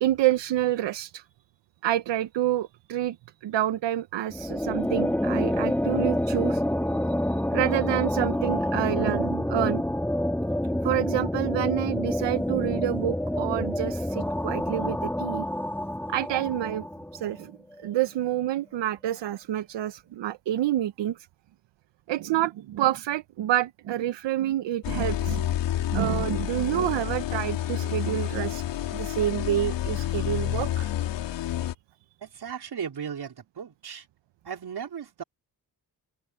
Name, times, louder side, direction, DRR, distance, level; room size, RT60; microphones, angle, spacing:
voice 1, 0.0-1.2 1.8-6.6 7.3-9.8 10.7-15.4 16.1-16.9 17.1-21.3 22.1-25.5 25.9-28.6 28.9-30.9, right 13 dB, 80° right, 1.0 m, -28 dB
sound 1, 4.3-17.4, left 1 dB, 5° left, 2.2 m, -28 dB
sound 2, 24.8-31.7, left 12 dB, 90° left, 3.8 m, -29 dB
voice 2, 32.2-34.1 34.4-35.2, right 7 dB, 65° right, 4.6 m, -36 dB
open air
supercardioid pair, 50°, 42 cm